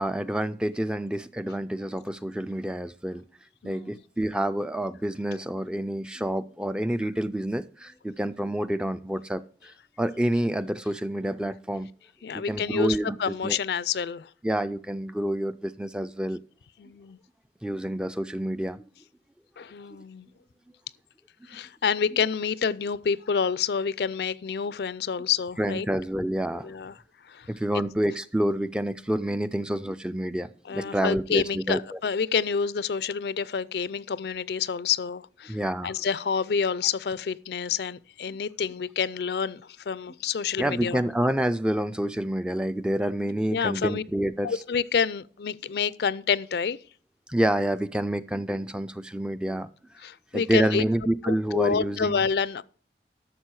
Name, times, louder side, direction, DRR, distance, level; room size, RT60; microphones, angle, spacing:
voice 1, 0.0-3.2 3.6-11.9 12.3-13.6 14.4-16.4 17.6-18.8 25.6-26.7 27.5-31.8 35.5-35.9 40.6-44.6 47.3-49.7 50.3-52.2, right 1 dB, 5° right, 0.3 m, -28 dB
voice 2, 3.6-4.0 12.2-14.3 16.8-17.2 19.6-20.3 21.5-25.9 26.6-26.9 27.3-27.5 30.7-35.6 35.8-41.0 43.5-44.0 44.4-46.8 50.0-50.8 51.2-52.6, left 6 dB, 65° left, 0.4 m, -28 dB
12.0 x 6.7 x 4.7 m
head